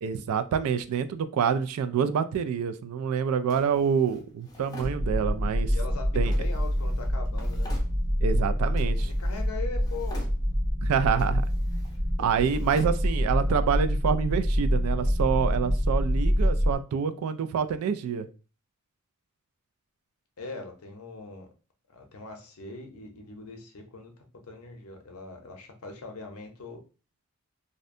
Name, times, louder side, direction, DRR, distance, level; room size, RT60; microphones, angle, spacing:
voice 1, 0.0-5.7 6.2-6.3 8.2-9.1 10.8-11.4 12.2-18.3, right 7 dB, 75° right, 12 dB, 0.3 m, -27 dB
Drawer open or close, 3.5-5.6 6.3-8.4 8.7-9.5 9.8-10.7 11.1-13.6, equal, 20° left, 0.6 m, -48 dB
sound 1, 4.8-16.8, equal, 60° right, 0.9 m, -26 dB
voice 2, 5.7-7.7 9.0-10.3 20.4-21.5 21.9-24.1 24.5-26.8, left 4 dB, 70° left, 4 dB, 0.6 m, -41 dB
2.6 x 2.1 x 2.5 m, 0.34 s
head